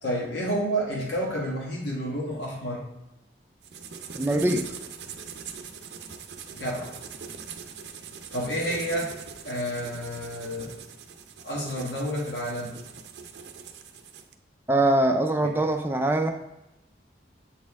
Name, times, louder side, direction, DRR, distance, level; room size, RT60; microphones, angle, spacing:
voice 1, 0.0-2.8 6.5-6.9 8.3-9.1 9.4-10.8 11.4-12.8 15.4-15.6, equal, 70° left, -3 dB, 1.4 m, -30 dB
sound 1, 3.6-14.3, right 6 dB, 70° right, 0.6 m, -42 dB
voice 2, 4.2-4.7 14.7-16.3, right 1 dB, 10° right, 5 dB, 0.4 m, -23 dB
7.8 x 4.3 x 3.5 m, 0.90 s
head